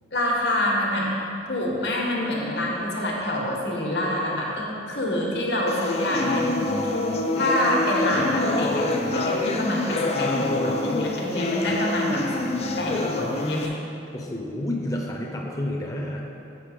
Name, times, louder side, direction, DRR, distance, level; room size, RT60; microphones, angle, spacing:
voice 1, 0.1-1.1 1.5-7.0 7.4-12.2 12.8-13.8, left 1 dB, 65° left, -3 dB, 1.4 m, -26 dB
sound 1, 5.7-13.7, left 2 dB, 35° left, 0.4 m, -26 dB
voice 2, 14.1-16.2, left 1 dB, 20° left, -2 dB, 0.8 m, -30 dB
7.5 x 5.8 x 5.1 m, 2.8 s
head